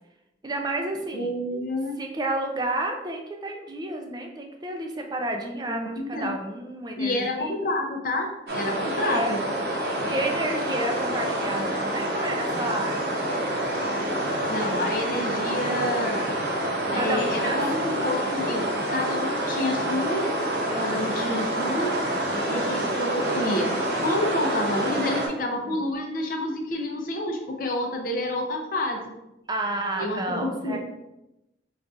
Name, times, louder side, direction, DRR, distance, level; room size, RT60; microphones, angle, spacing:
voice 1, 0.4-1.3 2.0-7.5 8.9-9.4 9.8-13.2 16.9-17.6 19.0-19.3 20.6-21.1 22.3-22.8 25.6-25.8 29.5-30.8, right 1 dB, 25° right, 3 dB, 0.4 m, -31 dB
voice 2, 1.1-2.0 5.7-6.4 7.0-9.4 14.5-16.3 16.9-18.6 18.9-20.3 20.8-21.9 22.5-23.7 24.0-29.0 30.0-30.8, left 1 dB, 50° left, 1 dB, 0.6 m, -29 dB
sound 1, 8.5-25.3, right 1 dB, 70° right, 0.8 m, -27 dB
5.3 x 2.4 x 2.4 m, 0.92 s
head